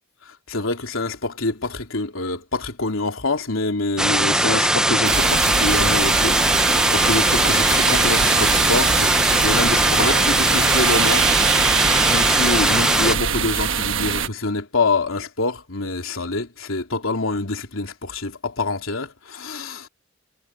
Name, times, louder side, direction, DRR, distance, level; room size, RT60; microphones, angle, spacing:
voice 1, 0.2-19.9, left 3 dB, 85° left, 3.3 m, -26 dB
sound 1, 4.0-13.2, right 1 dB, 5° right, 0.7 m, -19 dB
sound 2, 5.0-14.3, right 7 dB, 70° right, 1.3 m, -23 dB
head